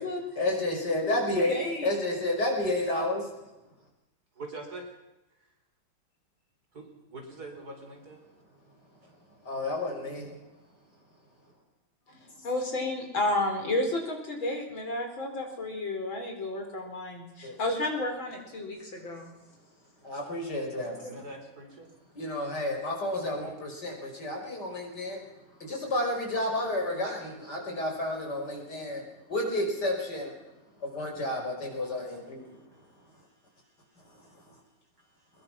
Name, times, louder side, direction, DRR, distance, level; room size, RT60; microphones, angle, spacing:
voice 1, 0.4-1.5 1.8-3.3 9.4-10.4 12.3-12.4 17.4-17.6 20.0-21.0 22.1-25.2 25.6-29.0 29.3-30.3 30.8-32.5, left 1 dB, 50° left, 1 dB, 5.9 m, -31 dB
voice 2, 1.5-1.9 12.4-19.3 21.0-21.1, left 2 dB, 65° left, 3 dB, 5.0 m, -31 dB
voice 3, 4.4-4.9 6.7-8.2 9.0-9.1 20.9-21.9, right 2 dB, 45° right, 3 dB, 4.5 m, -43 dB
23.0 x 21.5 x 6.0 m, 0.94 s
omnidirectional pair, 2.3 m